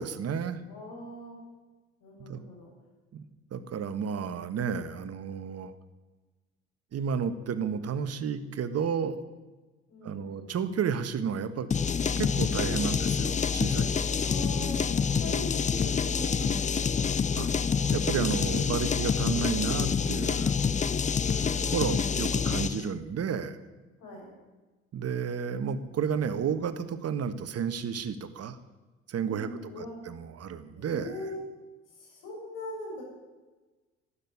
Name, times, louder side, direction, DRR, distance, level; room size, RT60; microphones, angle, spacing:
voice 1, 0.0-0.6 2.2-2.4 3.1-3.2 3.5-5.7 6.9-9.2 10.0-11.7 12.2-14.1 17.4-17.5 17.9-20.5 21.7-23.6 24.9-28.6 29.1-31.1, right 6 dB, 45° right, 11 dB, 1.4 m, -32 dB
voice 2, 0.6-1.4 2.0-2.7 9.9-10.6 14.2-14.9 15.2-18.1 21.2-22.1 24.0-24.3 29.2-30.0 30.7-31.4 31.9-33.0, left 1 dB, 65° left, -1 dB, 6.9 m, -42 dB
sound 1, 11.7-22.9, left 6 dB, 20° left, 0.6 m, -27 dB
12.5 x 10.0 x 9.8 m, 1.2 s
hypercardioid pair, 60°, 33 cm